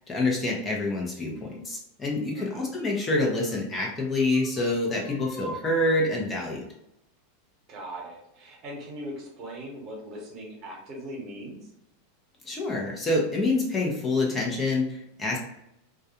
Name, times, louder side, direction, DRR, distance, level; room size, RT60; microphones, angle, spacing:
voice 1, 0.1-6.7 12.4-15.4, left 2 dB, 20° left, -2 dB, 0.7 m, -27 dB
voice 2, 2.3-2.7 7.7-11.6, right 1 dB, 45° right, -1 dB, 1.0 m, -39 dB
2.3 x 2.2 x 2.8 m, 0.81 s
hypercardioid pair, 105°, 0 cm